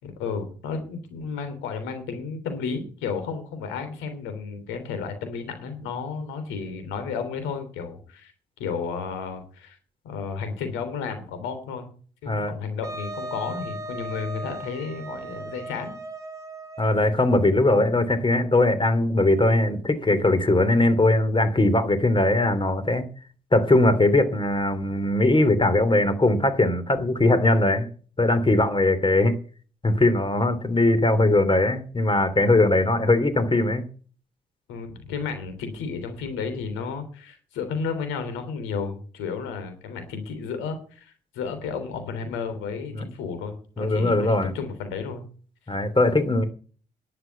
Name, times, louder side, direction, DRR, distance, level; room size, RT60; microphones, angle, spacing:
voice 1, 0.0-8.3 8.6-9.8 10.0-11.9 12.2-15.9 34.7-45.3, left 5 dB, 75° left, 8 dB, 3.3 m, -32 dB
Wind instrument woodwind instrument, 12.8-17.2, right 2 dB, 15° right, 3.9 m, -37 dB
voice 2, 16.8-23.1 23.5-27.9 28.2-29.4 29.8-33.8 42.9-43.0 43.8-44.5 45.7-46.4, left 2 dB, 25° left, 11 dB, 2.9 m, -20 dB
11.0 x 8.1 x 8.1 m, 0.40 s
hypercardioid pair, 45°, 20 cm